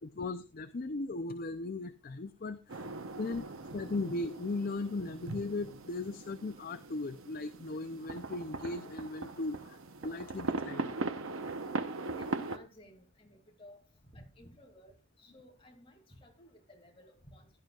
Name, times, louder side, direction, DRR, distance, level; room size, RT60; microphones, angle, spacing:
voice 1, 0.0-2.8 3.2-3.5 3.7-10.9, left 2 dB, 45° left, 0.6 m, -37 dB
sound 1, 2.7-12.6, right 3 dB, 80° right, 0.9 m, -40 dB
voice 2, 12.0-17.5, left 1 dB, 25° left, 2.5 m, -56 dB
16.5 x 11.0 x 2.4 m
head